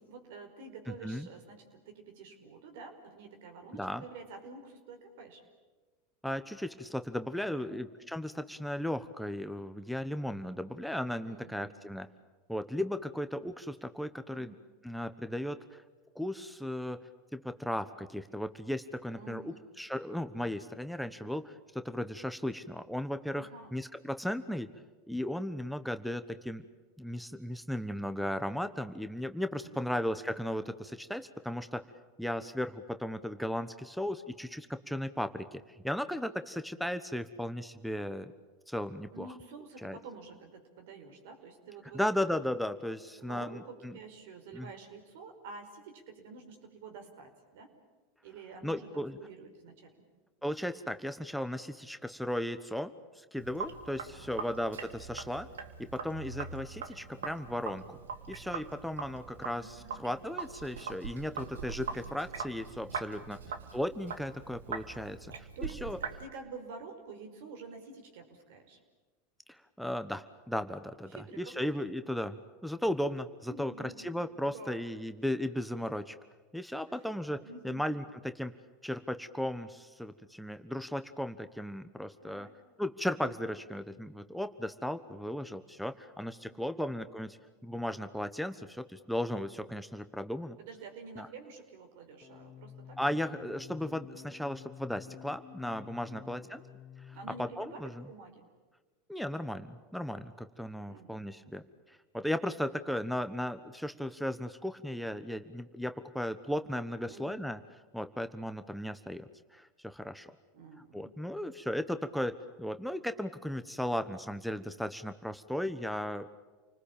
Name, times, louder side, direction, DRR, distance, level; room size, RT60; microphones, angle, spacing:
voice 1, 0.0-5.4 7.4-7.8 11.2-11.7 14.3-14.6 19.1-19.7 23.4-23.7 29.5-30.1 39.1-42.2 43.2-47.7 48.2-50.0 54.1-54.6 59.5-60.3 63.1-63.6 65.6-65.8 66.2-68.8 71.1-71.8 73.5-74.9 76.9-77.9 82.2-82.5 86.5-87.0 90.6-93.0 96.1-96.4 97.1-98.4 100.9-101.2 107.1-107.4 110.5-111.1, right 4 dB, 70° right, 5 dB, 5.2 m, -49 dB
voice 2, 0.9-1.3 3.7-4.0 6.2-12.1 12.5-14.5 14.8-15.8 16.1-17.0 17.3-24.7 25.1-26.6 27.0-31.8 32.2-38.3 38.7-39.3 39.8-40.0 41.9-44.0 44.5-44.7 48.6-49.2 50.4-55.5 55.8-58.0 58.3-63.4 63.7-66.0 69.5-76.2 76.5-78.5 78.8-82.5 82.8-87.4 87.6-90.6 91.2-91.3 93.0-96.6 97.1-98.1 99.1-107.6 107.9-110.3 110.9-112.3 112.6-116.3, left 1 dB, ahead, 9 dB, 1.1 m, -36 dB
Sink (filling or washing), 53.4-66.2, right 5 dB, 90° right, 2.0 m, -42 dB
sound 1, 92.2-97.9, left 8 dB, 40° left, 1.1 m, -51 dB
29.0 x 20.0 x 8.8 m, 1.3 s
hypercardioid pair, 105°, 0 cm